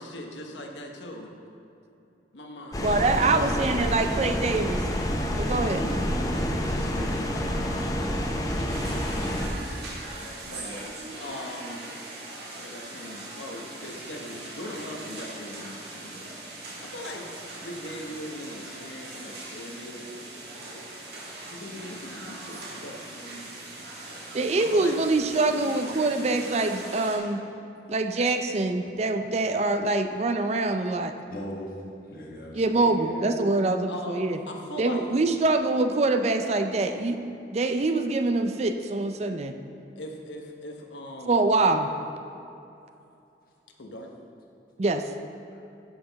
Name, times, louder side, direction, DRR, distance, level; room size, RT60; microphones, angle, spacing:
voice 1, 0.0-1.3 2.3-4.0 5.4-5.9 6.3-8.1 8.4-10.9 11.2-11.8 12.5-16.3 16.8-17.3 17.6-20.2 20.7-20.9 21.4-23.5 24.6-25.0 32.6-33.5 33.9-35.2 40.0-41.4 43.8-44.1, left 1 dB, 85° left, 2 dB, 1.0 m, -40 dB
sound 1, 2.7-9.5, equal, 20° left, 0.7 m, -28 dB
voice 2, 2.8-4.8 5.4-5.8 24.3-27.4 27.9-31.1 32.5-34.4 34.8-37.2 37.5-39.5 41.3-41.9 44.8-45.0, right 2 dB, 35° right, 7 dB, 0.4 m, -24 dB
voice 3, 5.7-7.1 31.3-31.7 32.0-32.6, equal, 50° left, -2 dB, 1.5 m, -36 dB
sound 2, 8.7-27.2, right 2 dB, 65° right, 1.8 m, -41 dB
11.5 x 5.9 x 4.0 m, 2.7 s
head